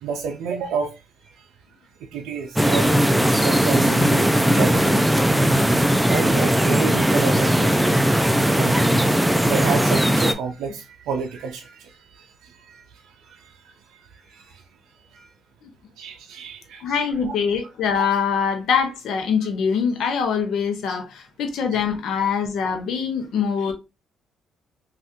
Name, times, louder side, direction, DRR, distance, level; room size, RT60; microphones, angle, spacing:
voice 1, 0.0-0.9 2.1-3.1 3.4-5.3 6.1-8.8 9.4-12.3 12.7-12.8 13.3-13.5 14.3-14.5 15.1-15.3 16.0-17.3 20.9-21.0 21.7-21.8, right 5 dB, 85° right, 0.4 m, -30 dB
sound 1, 2.6-10.3, equal, 5° right, 0.4 m, -18 dB
voice 2, 16.8-23.7, left 6 dB, 75° left, 0.7 m, -23 dB
2.6 x 2.5 x 3.4 m
cardioid pair, 90°, 0 cm